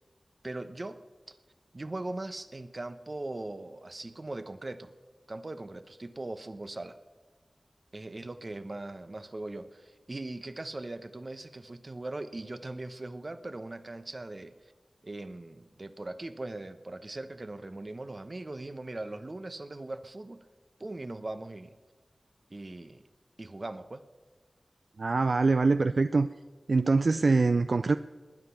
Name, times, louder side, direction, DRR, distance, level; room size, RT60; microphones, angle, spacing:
voice 1, 0.4-1.0 1.3-1.4 1.7-4.9 5.3-7.0 7.9-14.5 15.0-20.4 20.8-21.7 22.5-23.0 23.4-24.0, right 2 dB, 50° right, 11 dB, 1.0 m, -40 dB
voice 2, 25.0-26.3 26.7-28.0, right 3 dB, 75° right, 11 dB, 0.4 m, -24 dB
20.0 x 9.6 x 5.8 m, 1.4 s
cardioid pair, 40°, 0 cm